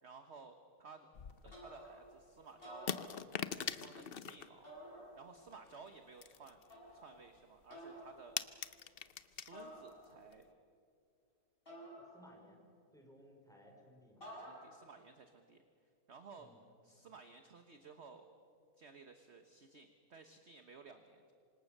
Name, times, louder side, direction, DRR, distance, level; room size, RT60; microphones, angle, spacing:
voice 1, 0.0-1.1 1.4-2.9 3.7-4.7 5.2-6.6 6.9-8.4 9.3-10.5 14.4-15.6 16.1-16.5 16.8-18.3 18.8-21.3, right 5 dB, 40° right, 7 dB, 1.4 m, -56 dB
sound 1, 1.1-1.6 2.9-4.5 5.5-5.9 6.2-6.9 7.2-7.4 7.6-7.7 7.9-9.6 9.9-10.0 10.3-10.4, left 8 dB, 55° left, 0.6 m, -42 dB
sound 2, 1.5-2.1 2.5-3.6 4.6-5.5 6.7-7.2 7.7-8.2 9.5-10.4 11.7-12.6 14.2-15.0, equal, 30° left, 7.8 m, -53 dB
voice 2, 11.9-12.6 12.9-14.2 16.4-16.6, equal, ahead, 0 dB, 5.2 m, -61 dB
27.0 x 25.5 x 6.7 m, 2.4 s
omnidirectional pair, 1.9 m